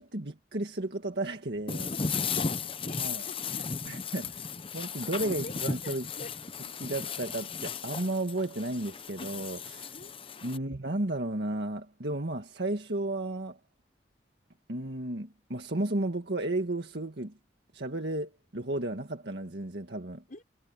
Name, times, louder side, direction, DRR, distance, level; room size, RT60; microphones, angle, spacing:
voice 1, 0.0-1.9 3.0-3.3 3.8-4.4 4.7-6.1 6.8-10.0 10.4-13.6 14.7-17.3 17.7-20.2, right 2 dB, 65° right, 1.9 m, -33 dB
sound 1, 1.7-10.6, left 5 dB, 30° left, 0.9 m, -35 dB
voice 2, 1.9-3.7 5.2-5.5 5.8-6.3 9.9-10.6 20.3-20.4, left 2 dB, 50° left, 4.3 m, -47 dB
head